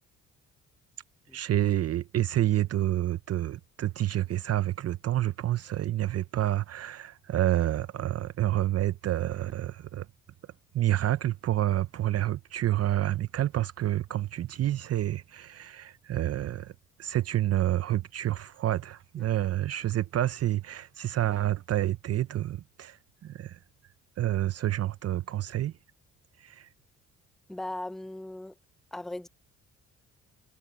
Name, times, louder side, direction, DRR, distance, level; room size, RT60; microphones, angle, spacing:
voice 1, 1.3-10.1 10.7-16.7 17.0-23.6 24.2-25.7 26.4-26.7, right 13 dB, 55° right, 0.6 m, -28 dB
voice 2, 27.5-28.6 28.9-29.3, left 1 dB, ahead, 0.5 m, -38 dB
cardioid pair, 90°, 30 cm